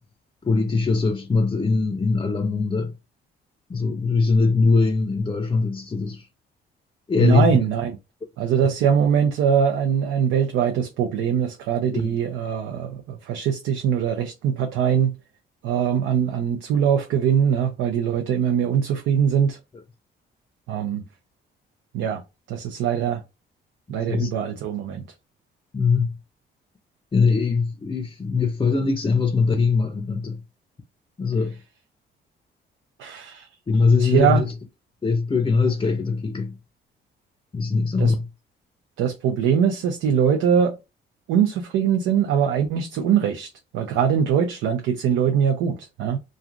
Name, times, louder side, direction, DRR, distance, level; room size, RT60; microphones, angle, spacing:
voice 1, 0.4-2.9 3.7-6.3 7.1-7.6 11.9-12.1 24.1-24.3 25.7-26.1 27.1-30.4 31.2-31.5 33.7-34.5 35.0-36.5 37.5-38.3, left 4 dB, 25° left, 0.5 m, -21 dB
voice 2, 7.2-7.9 8.4-15.1 15.6-19.6 20.7-21.0 21.9-22.2 22.5-23.2 23.9-25.1 33.0-33.5 34.0-34.4 38.0-38.1 39.0-40.7 41.3-46.2, right 8 dB, 90° right, 0.5 m, -22 dB
3.2 x 2.5 x 2.4 m
cardioid pair, 90°, 20 cm